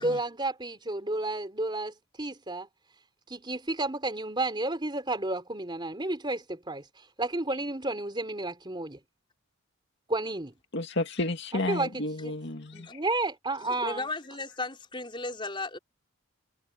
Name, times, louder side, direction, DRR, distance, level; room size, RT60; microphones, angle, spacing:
voice 1, 0.0-2.7 3.3-9.0 10.1-10.5 11.7-12.4 12.7-14.1, right 2 dB, 20° right, 3.8 m, -32 dB
voice 2, 10.7-13.0, left 2 dB, 55° left, 2.2 m, -32 dB
voice 3, 13.6-15.8, left 2 dB, 25° left, 5.0 m, -35 dB
head